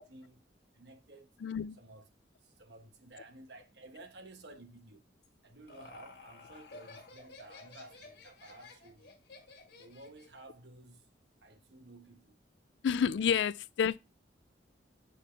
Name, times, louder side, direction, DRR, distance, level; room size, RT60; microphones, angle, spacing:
voice 1, 0.1-0.4 0.7-1.3 1.8-2.1 2.4-5.0 5.4-9.2 9.8-11.0 11.4-12.4, right 2 dB, 70° right, 1.2 m, -54 dB
voice 2, 1.4-1.8 12.8-14.0, left 7 dB, 75° left, 0.3 m, -29 dB
Laughter, 5.2-10.4, left 3 dB, 60° left, 1.7 m, -53 dB
8.3 x 3.9 x 3.3 m
head